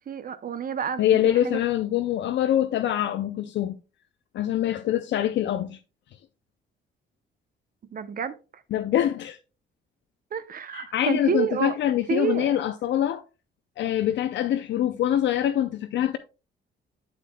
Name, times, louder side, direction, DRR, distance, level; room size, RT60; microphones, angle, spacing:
voice 1, 0.1-1.6 7.9-8.6 10.3-11.7 12.1-12.5, right 7 dB, 45° right, 0.6 m, -29 dB
voice 2, 1.0-3.8 4.3-5.8 8.7-9.4 10.7-13.2 13.8-16.2, left 11 dB, 65° left, 0.5 m, -24 dB
8.3 x 7.2 x 2.2 m
cardioid pair, 90°, 20 cm